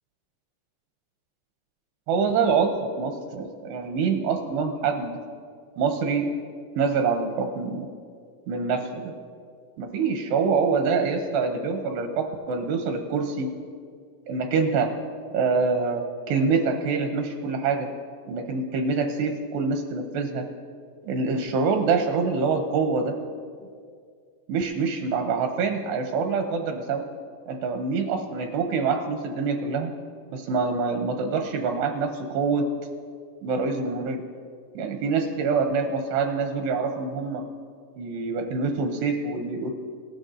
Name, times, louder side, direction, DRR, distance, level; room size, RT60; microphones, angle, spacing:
voice 1, 2.1-5.1 5.8-6.3 6.8-7.9 8.5-9.1 9.8-13.5 14.3-14.9 15.3-16.0 16.3-17.9 18.3-20.4 21.0-23.1 24.5-27.0 27.5-29.9 30.3-32.6 33.4-34.2 34.8-37.4 38.0-39.7, right 4 dB, 85° right, 5 dB, 2.6 m, -25 dB
18.5 x 12.5 x 2.6 m, 2.1 s
omnidirectional pair, 5.1 m